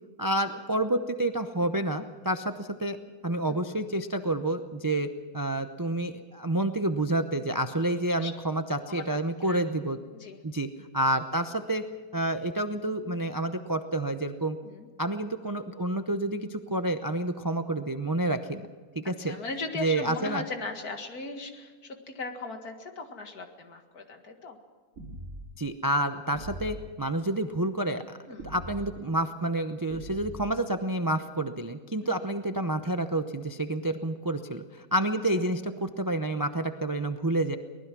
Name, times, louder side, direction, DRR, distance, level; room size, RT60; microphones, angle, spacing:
voice 1, 0.2-3.0 3.2-10.0 10.4-11.8 12.1-14.6 15.0-18.7 18.9-19.4 19.7-20.4 25.6-28.2 28.4-37.6, right 1 dB, 25° right, 8 dB, 0.5 m, -29 dB
voice 2, 19.0-24.6 28.3-28.5 32.0-32.2, left 3 dB, 75° left, 5 dB, 2.4 m, -38 dB
sound 1, 25.0-25.5 26.3-26.9 28.4-28.9 29.9-30.6, right 1 dB, 65° right, 2.8 m, -41 dB
24.0 x 19.5 x 6.1 m, 1.5 s
omnidirectional pair, 1.6 m